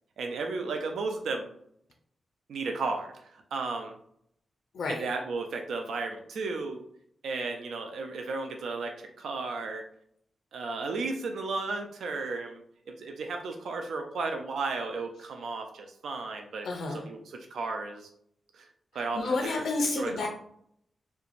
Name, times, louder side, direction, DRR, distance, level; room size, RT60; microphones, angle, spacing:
voice 1, 0.2-1.5 2.5-4.0 4.9-6.8 7.2-9.8 10.5-18.1 18.5-18.7 18.9-19.4 20.0-20.3, right 3 dB, 85° right, 4 dB, 0.3 m, -34 dB
voice 2, 4.7-5.1 16.6-17.0 19.1-20.3, left 3 dB, 80° left, 2 dB, 0.4 m, -30 dB
2.4 x 2.1 x 3.0 m, 0.68 s
cardioid pair, 75°, 0 cm